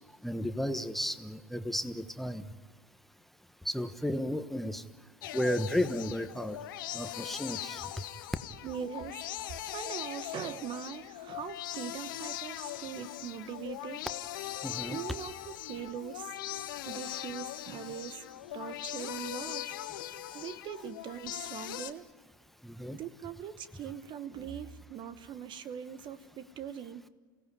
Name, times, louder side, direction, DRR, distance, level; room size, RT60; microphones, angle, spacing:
voice 1, 0.2-2.5 3.6-4.9 5.3-6.6 6.9-7.9 14.6-15.0 20.3-20.4 22.6-23.0, left 1 dB, ahead, 9 dB, 1.2 m, -33 dB
sound 1, 5.2-21.9, left 13 dB, 75° left, 1.0 m, -40 dB
voice 2, 8.6-9.2 9.5-14.0 14.9-16.4 16.8-18.3 18.5-20.0 20.3-22.1 22.9-27.0, right 8 dB, 45° right, 13 dB, 1.2 m, -41 dB
29.0 x 17.0 x 9.7 m, 1.5 s
hypercardioid pair, 80°, 11 cm